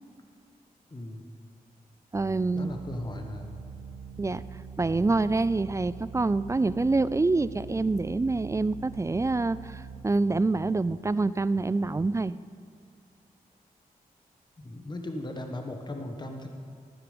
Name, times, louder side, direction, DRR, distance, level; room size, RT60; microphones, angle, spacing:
voice 1, 0.9-1.2 2.5-3.5 14.6-16.5, left 1 dB, 30° left, 4 dB, 1.3 m, -37 dB
voice 2, 2.1-2.7 4.2-4.4 4.8-12.3, right 3 dB, 20° right, 17 dB, 0.3 m, -26 dB
sound 1, 2.7-10.0, right 6 dB, 90° right, 0.7 m, -44 dB
12.5 x 9.4 x 5.2 m, 2.2 s
cardioid pair, 60°, 16 cm